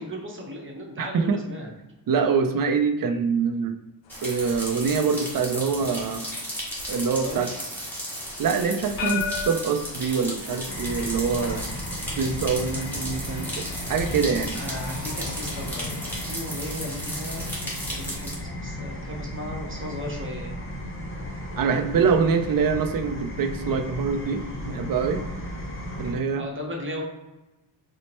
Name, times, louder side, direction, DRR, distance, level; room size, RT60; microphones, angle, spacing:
voice 1, 0.0-1.7 7.2-7.7 14.5-15.9 16.2-20.6 26.4-27.0, equal, 30° right, -1 dB, 0.9 m, -36 dB
voice 2, 1.0-1.4 2.1-3.7 4.2-6.2 6.9-7.5 8.4-11.6 12.2-13.6 13.9-14.6 21.6-25.2 26.0-26.5, right 5 dB, 50° right, 8 dB, 0.4 m, -24 dB
sound 1, 4.0-16.3, left 6 dB, 80° left, 0.6 m, -39 dB
sound 2, 4.1-18.3, equal, 5° left, 1.5 m, -35 dB
sound 3, 10.7-26.1, equal, 30° left, 0.7 m, -35 dB
4.2 x 2.1 x 3.0 m, 1.0 s
cardioid pair, 90°, 44 cm